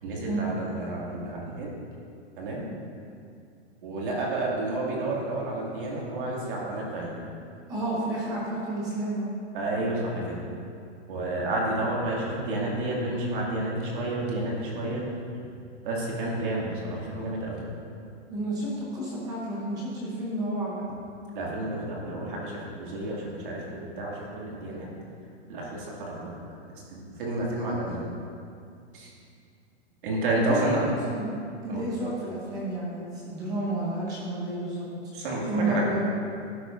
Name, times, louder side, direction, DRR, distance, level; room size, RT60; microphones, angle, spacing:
voice 1, 0.0-1.7 2.4-2.6 3.8-7.1 9.5-10.5 11.1-15.1 15.8-17.6 21.3-24.9 25.5-26.4 26.9-28.1 28.9-29.1 30.0-30.8 31.7-31.8 35.1-35.8, right 2 dB, 45° right, -4 dB, 2.3 m, -30 dB
voice 2, 7.7-9.3 18.3-20.8 30.3-31.3 31.6-34.8 35.5-36.1, right 1 dB, 10° right, -5 dB, 0.8 m, -31 dB
12.0 x 10.5 x 2.6 m, 2.4 s
supercardioid pair, 180°, 35 cm